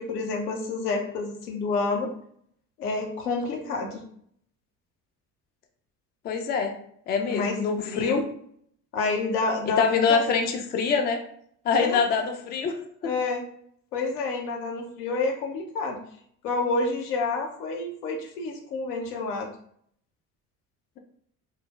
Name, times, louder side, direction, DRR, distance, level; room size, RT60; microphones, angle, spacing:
voice 1, 0.0-2.1 2.8-4.0 7.3-7.5 7.9-8.2 8.9-9.8 10.1-10.2 11.8-12.0 13.0-13.4 13.9-16.0 16.4-19.5, left 3 dB, 85° left, 2 dB, 0.6 m, -28 dB
voice 2, 6.2-6.7 7.1-8.2 9.8-11.2 11.6-13.1, left 5 dB, 25° left, 5 dB, 0.3 m, -25 dB
3.1 x 2.0 x 2.2 m, 0.65 s
hypercardioid pair, 55°, 46 cm